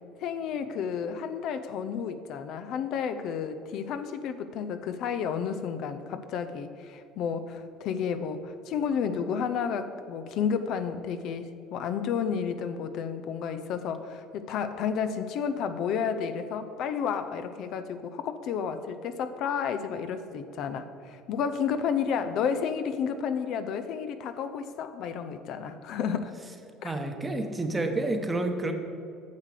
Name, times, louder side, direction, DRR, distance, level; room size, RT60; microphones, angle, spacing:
voice 1, 0.2-26.3 26.8-27.0, left 7 dB, 60° left, 9 dB, 0.5 m, -31 dB
voice 2, 26.8-28.7, right 2 dB, 15° right, 5 dB, 1.0 m, -29 dB
9.4 x 6.5 x 4.9 m, 2.6 s
supercardioid pair, 105°, 0 cm